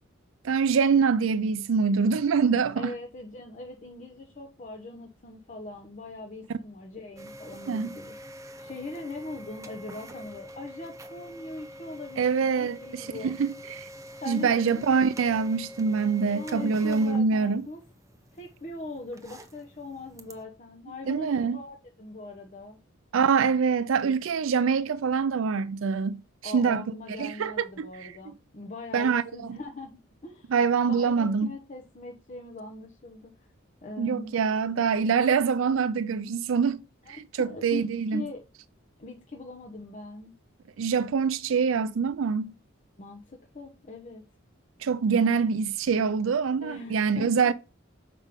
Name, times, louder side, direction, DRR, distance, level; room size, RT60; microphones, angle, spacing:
voice 1, 0.4-2.9 7.7-7.9 12.2-13.9 14.3-17.7 21.1-21.6 23.1-26.8 27.2-28.1 28.9-29.2 29.5-29.6 30.5-31.5 34.0-36.8 37.1-38.2 40.8-42.5 44.8-47.5, right 5 dB, 75° right, 0.4 m, -25 dB
voice 2, 2.8-8.1 8.6-13.4 14.2-14.8 16.3-17.8 18.3-22.8 26.4-30.5 30.8-33.3 33.8-34.3 37.1-38.4 39.0-40.3 43.0-44.2 46.6-47.3, left 2 dB, 40° left, 0.8 m, -41 dB
sound 1, 7.2-20.4, equal, 15° right, 0.7 m, -46 dB
7.2 x 5.0 x 3.6 m
head